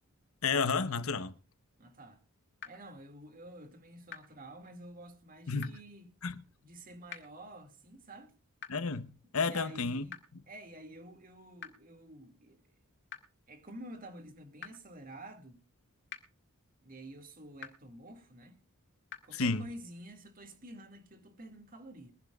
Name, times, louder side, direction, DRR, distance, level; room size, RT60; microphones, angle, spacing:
voice 1, 0.4-1.3 5.5-5.7 6.2-6.4 8.7-10.1 19.3-19.7, left 4 dB, 70° left, 1.0 m, -31 dB
voice 2, 1.8-2.2 2.6-6.1 6.6-8.3 9.4-10.2 10.5-12.6 13.5-15.6 16.8-18.6 19.2-22.1, right 1 dB, 40° right, 2.3 m, -50 dB
sound 1, 2.6-2.7 4.1-4.2 5.6-5.7 7.1-7.2 8.6-8.7 10.1-10.2 11.6-11.7 13.1-13.2 14.6-14.7 16.1-16.2 17.6-17.7 19.1-19.2, left 8 dB, 50° left, 1.9 m, -43 dB
23.5 x 11.5 x 2.4 m
head